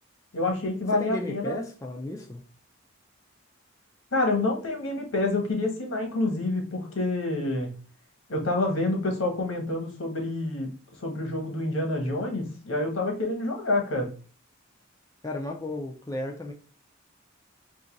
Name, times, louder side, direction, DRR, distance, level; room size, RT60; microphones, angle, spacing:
voice 1, 0.3-1.6 4.1-7.7 8.3-10.7 11.0-14.1, left 2 dB, 75° left, 1.2 m, -27 dB
voice 2, 0.9-2.4 15.2-16.5, left 1 dB, 15° left, 0.4 m, -34 dB
2.7 x 2.6 x 3.9 m
head